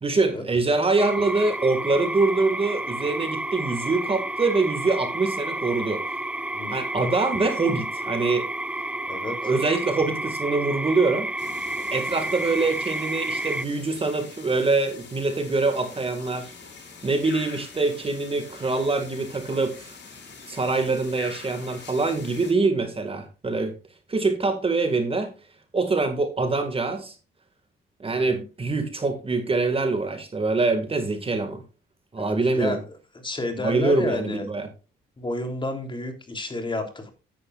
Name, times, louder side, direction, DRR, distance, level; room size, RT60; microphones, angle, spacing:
voice 1, 0.0-6.0 6.7-8.5 9.4-11.3 11.9-16.5 17.0-20.0 20.5-23.7 24.1-25.3 25.7-27.1 28.0-31.6 32.1-32.8 33.6-34.7, right 3 dB, 30° right, 7 dB, 2.0 m, -24 dB
sound 1, 1.0-13.6, right 1 dB, 5° right, 0.4 m, -31 dB
voice 2, 9.1-9.4 12.2-12.3 28.1-28.4 32.2-32.8 33.2-34.5 35.2-37.1, left 2 dB, 25° left, 5 dB, 3.2 m, -30 dB
sound 2, 11.4-22.5, left 5 dB, 60° left, 5.7 m, -44 dB
12.5 x 10.5 x 2.4 m, 0.32 s
cardioid pair, 90°, 20 cm